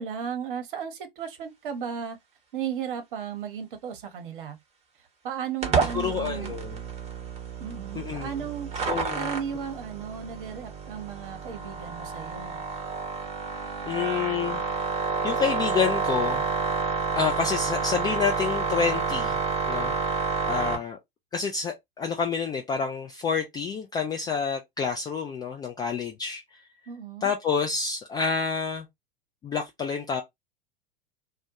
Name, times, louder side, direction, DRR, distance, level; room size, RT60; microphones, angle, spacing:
voice 1, 0.0-2.2 2.5-4.6 5.2-6.5 7.6-8.7 9.1-12.6 26.9-27.3, right 7 dB, 60° right, 0.8 m, -35 dB
sound 1, 5.6-20.8, right 4 dB, 20° right, 0.9 m, -29 dB
voice 2, 5.9-6.8 8.0-8.3 8.8-9.3 13.8-14.9 15.2-16.4 17.1-19.4 19.7-21.0 21.3-26.4 27.2-28.9 29.4-30.2, left 6 dB, 15° left, 0.3 m, -28 dB
2.1 x 2.1 x 2.8 m
figure-of-eight pair, 90°, 29 cm